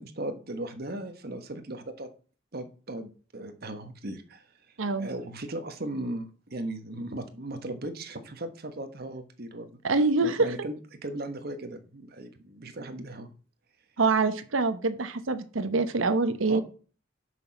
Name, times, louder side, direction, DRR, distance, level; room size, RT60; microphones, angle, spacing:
voice 1, 0.0-2.1 2.5-4.4 5.0-9.8 10.2-10.8 11.0-13.3 16.5-16.6, right 1 dB, 50° right, 8 dB, 1.3 m, -37 dB
voice 2, 4.8-5.1 9.8-10.5 14.0-16.6, right 3 dB, 85° right, 10 dB, 0.9 m, -25 dB
7.0 x 6.2 x 5.8 m, 0.39 s
head